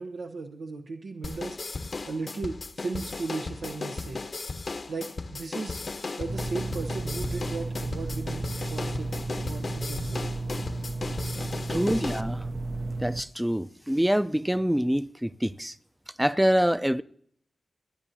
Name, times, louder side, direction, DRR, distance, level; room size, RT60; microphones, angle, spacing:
voice 1, 0.0-1.6 2.1-4.2 4.9-5.8 6.2-10.3 11.7-12.0, right 3 dB, 85° right, 0.9 m, -36 dB
sound 1, 1.2-12.2, left 3 dB, 55° left, 0.9 m, -36 dB
sound 2, 6.3-13.2, right 2 dB, 45° right, 0.6 m, -33 dB
voice 2, 11.7-12.5 13.0-15.7 16.2-17.0, equal, 5° right, 0.5 m, -25 dB
28.5 x 10.0 x 2.8 m
cardioid pair, 55°, 0 cm